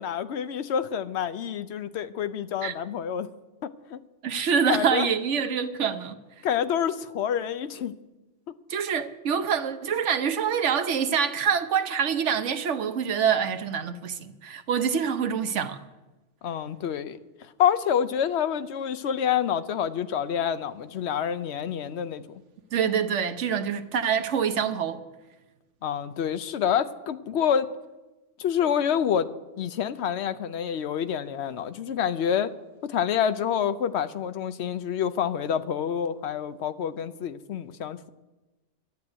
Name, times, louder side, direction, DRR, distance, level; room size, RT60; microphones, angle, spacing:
voice 1, 0.0-3.3 3.6-4.0 4.7-5.1 6.4-7.9 16.4-17.2 17.6-22.2 25.8-27.7 28.4-29.3 29.6-32.5 32.8-38.1, left 8 dB, 65° left, 0.9 m, -27 dB
voice 2, 4.2-6.2 8.7-15.8 22.7-25.0, right 7 dB, 70° right, 1.1 m, -26 dB
11.5 x 7.9 x 9.8 m
omnidirectional pair, 1.3 m